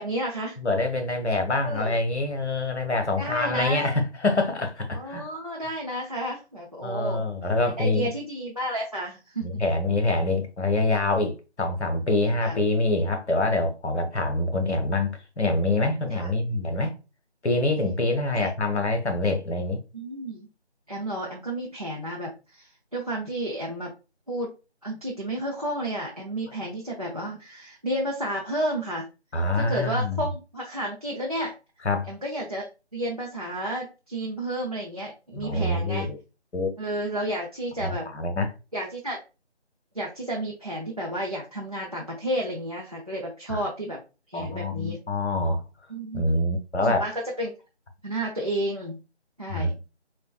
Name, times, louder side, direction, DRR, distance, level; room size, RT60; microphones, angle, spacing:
voice 1, 0.0-0.6 1.6-2.0 3.2-3.8 4.9-7.2 7.8-9.4 12.4-12.6 16.1-16.3 18.3-18.5 19.9-20.5 20.9-23.9 24.3-24.5 24.8-29.1 29.5-31.5 32.1-32.7 32.9-36.1 36.8-38.1 38.7-39.2 39.9-44.0 44.3-45.0 45.9-46.3 46.8-47.5 48.0-49.0 49.4-49.7, right 1 dB, 35° right, 0.5 m, -31 dB
voice 2, 0.6-5.3 6.8-8.1 9.4-16.9 17.4-19.8 29.3-30.2 31.8-32.1 35.3-36.2 36.5-36.7 37.8-38.5 43.5-43.6 44.3-45.6 46.1-47.0 49.5-49.7, left 2 dB, 80° left, 0.9 m, -25 dB
4.4 x 2.2 x 2.3 m
figure-of-eight pair, 165°, 34 cm